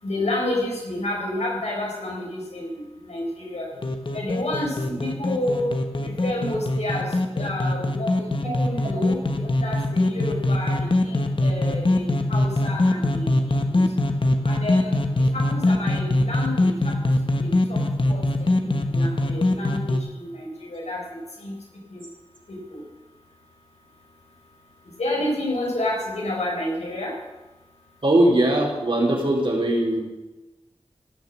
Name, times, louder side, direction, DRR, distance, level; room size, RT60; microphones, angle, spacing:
voice 1, 0.0-3.7 4.1-13.8 14.4-17.0 17.3-17.8 18.1-21.0 21.4-21.5 21.9-22.0 22.5-22.8 25.0-27.1, left 1 dB, 85° left, -2 dB, 4.5 m, -30 dB
sound 1, 3.8-20.0, left 2 dB, 50° left, 1.2 m, -23 dB
voice 2, 28.0-30.0, right 1 dB, 55° right, -2 dB, 4.2 m, -20 dB
16.5 x 6.8 x 7.4 m, 1.1 s
wide cardioid pair, 50°, 11 cm